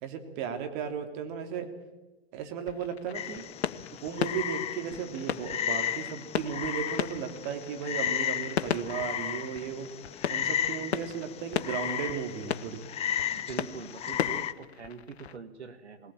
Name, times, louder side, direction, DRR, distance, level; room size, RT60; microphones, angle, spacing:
voice 1, 0.0-1.7 2.3-3.4 4.0-9.9 10.3-12.8, right 7 dB, 45° right, 6 dB, 2.9 m, -35 dB
sound 1, 2.7-15.4, left 9 dB, 70° left, 0.9 m, -37 dB
Frog, 3.1-14.5, left 10 dB, 20° left, 0.7 m, -34 dB
voice 2, 13.3-16.1, right 5 dB, 80° right, 11 dB, 1.8 m, -43 dB
20.5 x 18.0 x 8.8 m, 1.1 s
hypercardioid pair, 110°, 33 cm